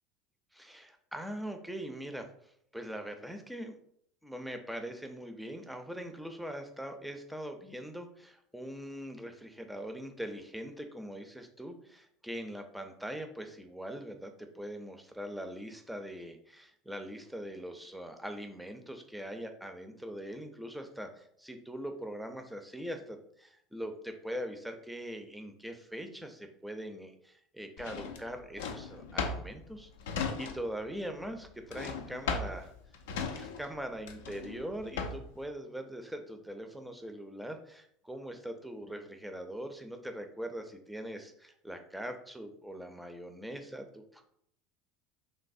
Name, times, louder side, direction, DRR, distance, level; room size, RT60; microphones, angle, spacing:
voice 1, 0.5-3.8 4.2-29.9 30.4-32.7 33.3-44.2, equal, 5° right, 5 dB, 0.4 m, -42 dB
Drawer open or close, 27.8-30.9 31.1-35.4, left 5 dB, 80° left, 0.3 m, -37 dB
3.1 x 2.0 x 2.5 m, 0.68 s
hypercardioid pair, 80°, 0 cm